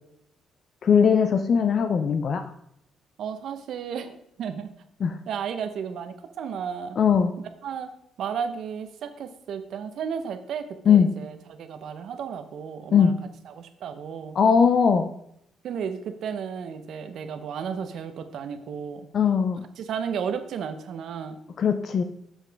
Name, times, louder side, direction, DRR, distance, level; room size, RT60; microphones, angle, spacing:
voice 1, 0.8-2.4 5.0-5.2 7.0-7.3 10.9-11.1 12.9-13.1 14.4-15.1 19.1-19.6 21.6-22.0, left 7 dB, 40° left, 8 dB, 0.4 m, -19 dB
voice 2, 3.2-4.7 5.3-7.0 7.4-7.9 8.2-13.1 13.5-14.4 15.6-19.1 19.8-21.4, right 7 dB, 55° right, 9 dB, 0.7 m, -33 dB
7.4 x 7.2 x 3.4 m, 0.75 s
cardioid pair, 170°, 0 cm